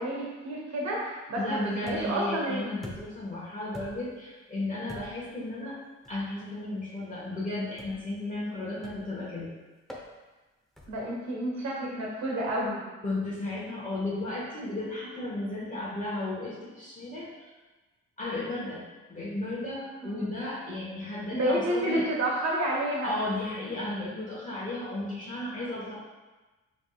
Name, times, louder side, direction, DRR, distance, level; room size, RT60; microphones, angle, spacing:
voice 1, 0.0-2.7 10.9-12.8 20.0-20.3 21.3-23.2, right 1 dB, 60° right, -3 dB, 1.4 m, -30 dB
voice 2, 1.4-5.8 6.1-9.5 13.0-17.5 18.2-18.8 19.1-22.1 23.0-25.9, left 2 dB, 25° left, -7 dB, 1.2 m, -34 dB
sound 1, 1.9-2.3 2.8-3.3 3.7-4.2 4.9-5.3 6.0-6.3 7.8-8.1 8.8-9.2 9.9-10.1 10.8-11.1, equal, ahead, 0.7 m, -45 dB
5.2 x 3.2 x 2.3 m, 1.2 s
cardioid pair, 90°, 30 cm